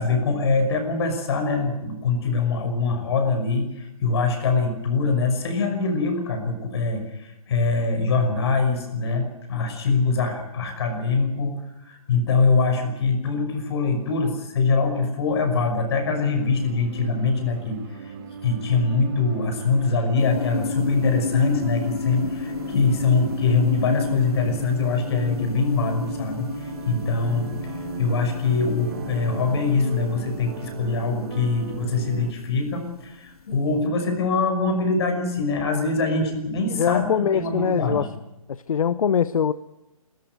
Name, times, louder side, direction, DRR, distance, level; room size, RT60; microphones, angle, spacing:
voice 1, 0.0-18.1 18.4-27.5 28.0-38.0, left 4 dB, 45° left, 6 dB, 5.8 m, -23 dB
sound 1, 15.9-32.3, right 8 dB, 40° right, 1.4 m, -37 dB
sound 2, 20.2-33.6, left 5 dB, 85° left, 1.5 m, -33 dB
voice 2, 36.8-38.1 38.5-39.5, left 8 dB, 70° left, 15 dB, 0.8 m, -22 dB
29.0 x 13.5 x 8.0 m, 0.96 s
hypercardioid pair, 160°, 19 cm